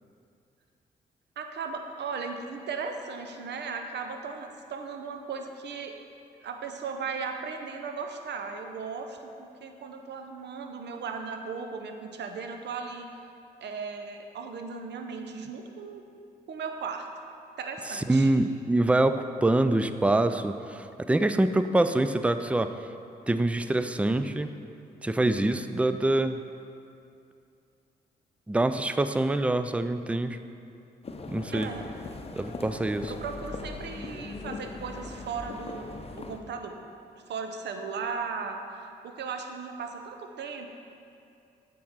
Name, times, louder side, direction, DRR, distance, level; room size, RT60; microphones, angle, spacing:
voice 1, 1.4-6.0 6.4-13.1 13.6-16.0 16.5-17.1 17.6-18.3 31.5-31.9 33.1-36.8 37.3-38.6 39.0-40.7, right 5 dB, 65° right, 5 dB, 0.7 m, -37 dB
voice 2, 17.9-22.7 23.3-24.5 25.0-26.4 28.5-30.4 31.3-31.7 32.4-33.1, right 2 dB, 5° right, 10 dB, 0.3 m, -25 dB
sound 1, 31.0-36.4, left 3 dB, 30° left, 0.7 m, -40 dB
7.6 x 3.7 x 5.7 m, 2.5 s
hypercardioid pair, 45°, 20 cm